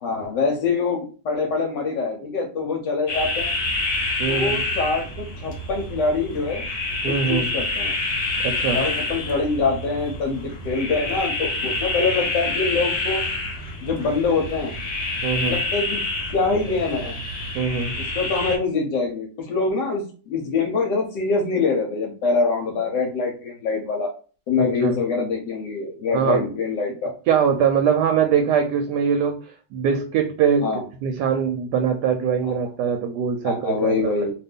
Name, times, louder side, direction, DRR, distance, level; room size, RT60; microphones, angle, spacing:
voice 1, 0.0-3.5 4.3-6.6 7.0-8.0 8.7-13.2 13.8-14.7 15.4-16.0 16.3-17.1 18.0-24.1 24.5-27.1 30.6-30.8 32.5-32.6 33.4-34.3, left 4 dB, 75° left, 0 dB, 1.3 m, -24 dB
sound 1, 3.1-18.6, left 2 dB, 50° left, 0.9 m, -27 dB
voice 2, 4.2-4.6 7.0-7.5 8.4-8.8 15.2-15.6 17.5-17.9 24.6-25.0 26.1-26.4 27.3-30.7 31.0-34.1, right 7 dB, 75° right, 5 dB, 1.1 m, -22 dB
2.8 x 2.5 x 3.5 m, 0.38 s
omnidirectional pair, 1.9 m